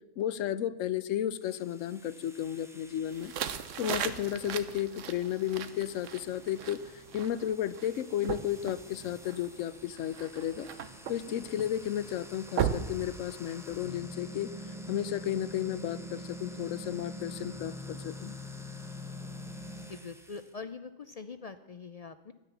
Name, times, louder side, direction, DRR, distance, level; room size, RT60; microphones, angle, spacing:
voice 1, 0.2-3.3 3.8-10.7 11.1-14.5 14.9-18.3, left 11 dB, 85° left, 17 dB, 1.0 m, -33 dB
sound 1, 1.4-20.5, left 1 dB, 5° right, 0.7 m, -46 dB
sound 2, 3.1-13.8, right 8 dB, 80° right, 1.1 m, -38 dB
voice 2, 19.9-22.3, left 5 dB, 55° left, 11 dB, 0.4 m, -44 dB
12.5 x 9.9 x 7.0 m, 1.1 s
omnidirectional pair, 1.3 m